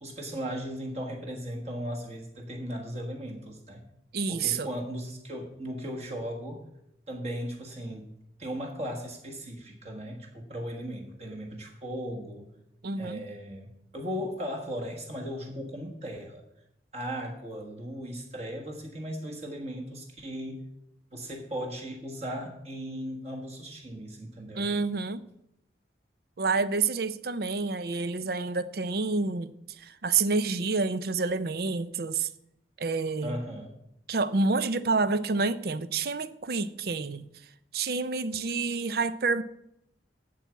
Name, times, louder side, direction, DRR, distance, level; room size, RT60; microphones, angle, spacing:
voice 1, 0.0-3.8 4.3-6.7 7.1-8.1 8.4-12.5 13.0-16.4 16.9-20.6 21.1-24.7 33.2-33.7, equal, 35° right, 1 dB, 1.5 m, -37 dB
voice 2, 4.1-4.7 12.8-13.2 24.6-25.2 26.4-32.3 32.8-33.4 34.1-37.2 37.7-39.4, right 4 dB, 55° right, 15 dB, 0.5 m, -28 dB
8.6 x 7.3 x 8.1 m, 0.80 s
head